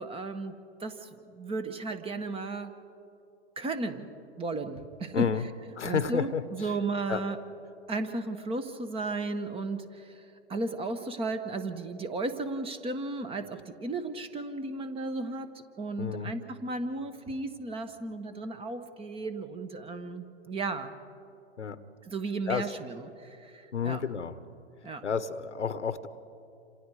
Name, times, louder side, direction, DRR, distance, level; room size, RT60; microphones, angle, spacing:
voice 1, 0.0-2.8 3.6-4.1 4.4-5.3 5.8-7.4 7.9-10.2 10.5-20.9 22.0-24.0 24.8-25.0, right 3 dB, 15° right, 10 dB, 1.3 m, -35 dB
voice 2, 5.1-5.5 5.7-6.8 7.1-7.2 16.0-16.3 21.6-21.8 22.5-22.7 23.7-24.4 25.0-26.1, left 6 dB, 90° left, 13 dB, 1.3 m, -31 dB
27.5 x 27.0 x 4.9 m, 2.7 s
hypercardioid pair, 120°, 34 cm